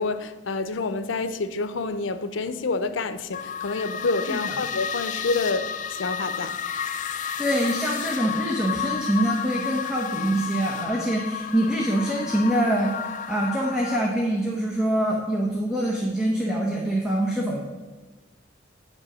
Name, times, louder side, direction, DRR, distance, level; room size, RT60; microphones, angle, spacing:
voice 1, 0.0-6.6, left 3 dB, 90° left, 0.6 m, -28 dB
sound 1, 3.3-14.1, left 8 dB, 40° left, 0.5 m, -32 dB
voice 2, 7.4-17.6, right 1 dB, 5° right, 1.1 m, -25 dB
9.0 x 5.3 x 6.2 m
head